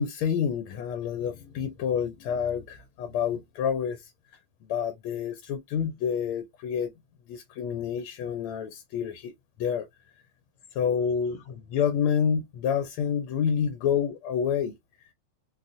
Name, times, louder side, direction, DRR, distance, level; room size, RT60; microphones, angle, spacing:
voice 1, 0.0-4.0 4.7-6.9 7.3-9.3 9.6-9.9 10.7-15.1, left 7 dB, 85° left, 1.5 m, -28 dB
3.9 x 2.3 x 2.5 m
omnidirectional pair, 2.3 m